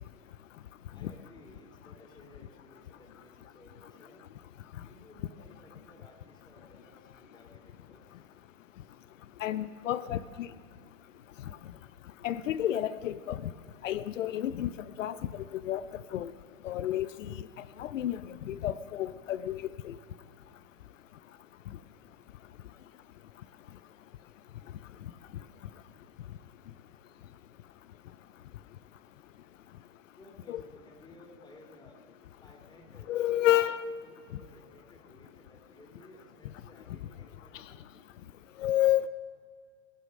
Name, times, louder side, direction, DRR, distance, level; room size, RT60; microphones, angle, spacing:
voice 1, 0.9-4.2 4.8-8.2 30.2-32.0 32.4-33.6 34.0-37.9, left 1 dB, 10° left, 2 dB, 3.1 m, -56 dB
voice 2, 9.4-10.5 12.2-13.4 13.8-14.7 15.0-15.1 15.5-15.8 16.1-16.3 16.6-17.3 17.8-18.2 18.5-19.9 30.5-30.6 33.1-33.8 38.6-39.1, left 13 dB, 85° left, 15 dB, 0.6 m, -30 dB
21.0 x 8.2 x 6.4 m, 2.1 s
hypercardioid pair, 120°, 37 cm